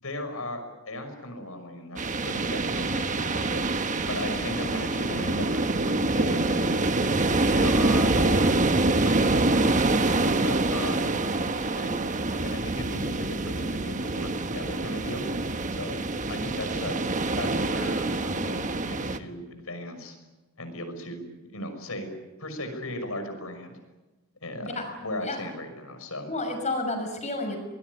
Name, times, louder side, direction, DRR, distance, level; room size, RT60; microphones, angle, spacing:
voice 1, 0.0-3.8 4.1-6.8 7.4-8.6 9.0-12.0 12.4-15.3 15.7-16.0 16.3-17.0 17.4-20.2 20.6-22.1 22.4-23.8 24.4-26.3, left 1 dB, 80° left, 7 dB, 5.9 m, -37 dB
sound 1, 2.0-19.2, right 2 dB, 35° right, 1.2 m, -26 dB
voice 2, 26.3-27.6, left 2 dB, 35° left, 4 dB, 6.3 m, -30 dB
24.0 x 21.0 x 9.6 m, 1.1 s
head